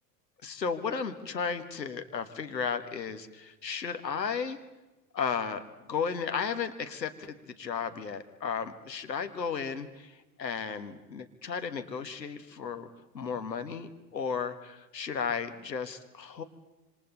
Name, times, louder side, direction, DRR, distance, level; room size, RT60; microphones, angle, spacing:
voice 1, 0.4-4.6 5.1-12.9 13.1-16.4, left 6 dB, 85° left, 9 dB, 1.6 m, -34 dB
27.0 x 26.5 x 4.0 m, 1.1 s
figure-of-eight pair, 80°, 49 cm